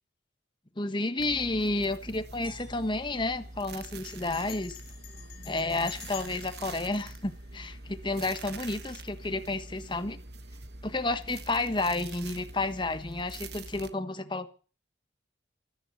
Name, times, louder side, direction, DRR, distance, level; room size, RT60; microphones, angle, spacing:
voice 1, 0.8-4.8 5.4-10.2 10.8-14.5, left 2 dB, 25° left, 10 dB, 1.3 m, -31 dB
sound 1, 1.2-13.9, right 3 dB, 55° right, 1.2 m, -45 dB
sound 2, 2.4-4.4, left 1 dB, 5° right, 3.9 m, -56 dB
Bell, 4.1-8.1, left 13 dB, 50° left, 4.7 m, -50 dB
13.5 x 13.5 x 7.1 m, 0.39 s
head